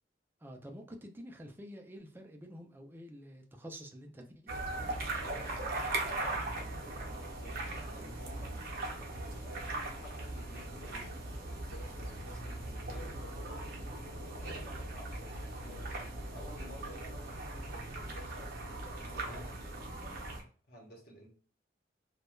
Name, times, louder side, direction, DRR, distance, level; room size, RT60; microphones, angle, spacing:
voice 1, 0.4-4.5, equal, 10° right, 0.3 m, -48 dB
sound 1, 4.5-20.4, right 2 dB, 55° right, 0.6 m, -39 dB
voice 2, 5.2-8.6 9.4-13.7 14.4-19.6 20.7-21.3, equal, 55° left, 0.8 m, -53 dB
2.2 x 2.1 x 2.9 m
head